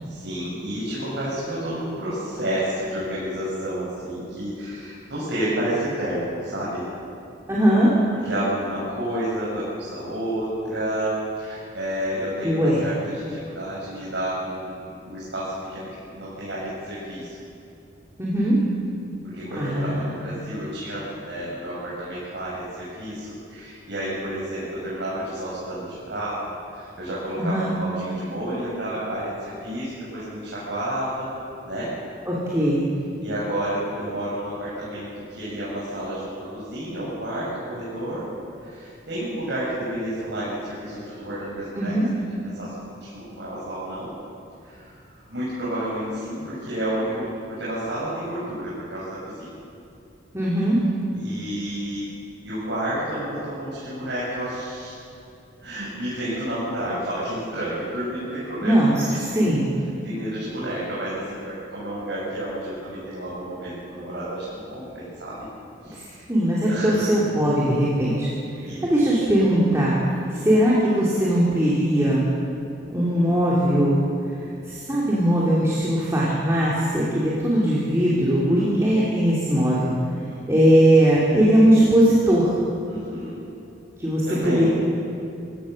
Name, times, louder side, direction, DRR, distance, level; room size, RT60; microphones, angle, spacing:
voice 1, 0.1-6.8 8.1-17.4 19.2-26.4 26.7-31.3 31.6-31.9 33.2-38.3 38.6-42.7 43.0-44.1 44.6-49.5 51.1-52.0 52.4-54.9 55.6-59.5 60.0-65.4 65.8-66.2 66.7-67.1 68.6-68.8 78.5-78.9 82.9-83.3 84.3-84.7, right 1 dB, 65° right, -8 dB, 6.4 m, -30 dB
voice 2, 7.5-7.9 12.4-12.8 18.2-18.6 19.5-20.5 27.3-27.7 32.3-32.9 41.7-42.1 50.3-50.8 58.6-58.9 59.3-59.7 66.3-68.3 68.6-70.0 70.3-72.2 72.9-74.0 74.7-79.9 80.5-82.5 84.0-84.7, equal, 15° right, -7 dB, 3.1 m, -20 dB
25.5 x 16.5 x 6.6 m, 2.7 s
head